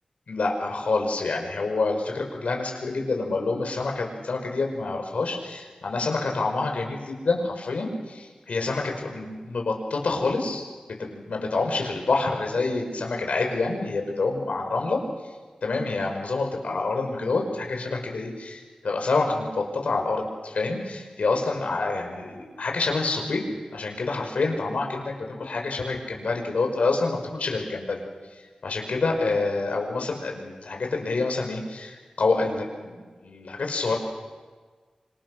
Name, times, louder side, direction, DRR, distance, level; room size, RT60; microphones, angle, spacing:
voice 1, 0.3-10.6 11.0-15.0 15.6-23.4 23.7-28.0 28.6-34.0, left 3 dB, 85° left, 2 dB, 6.0 m, -27 dB
27.5 x 26.5 x 6.6 m, 1.4 s
wide cardioid pair, 65°, 2 cm